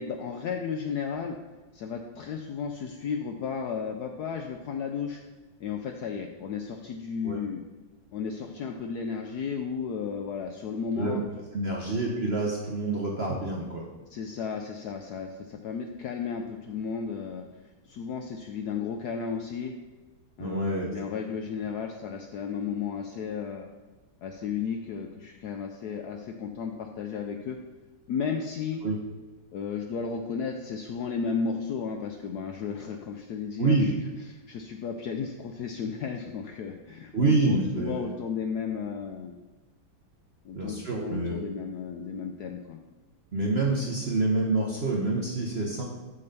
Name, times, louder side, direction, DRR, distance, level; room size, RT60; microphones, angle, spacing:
voice 1, 0.0-1.3 1.7-5.2 5.6-7.6 8.1-11.2 14.1-17.4 17.8-19.7 20.4-23.7 24.2-27.6 28.1-28.8 29.5-33.9 34.3-39.4 40.4-42.8, left 6 dB, 75° left, 4 dB, 0.9 m, -34 dB
voice 2, 11.5-13.9 20.4-20.9 28.8-29.0 33.6-33.9 37.1-37.9 40.5-41.4 43.3-45.8, right 2 dB, 50° right, -2 dB, 0.8 m, -27 dB
7.5 x 3.9 x 6.5 m, 1.2 s
omnidirectional pair, 2.2 m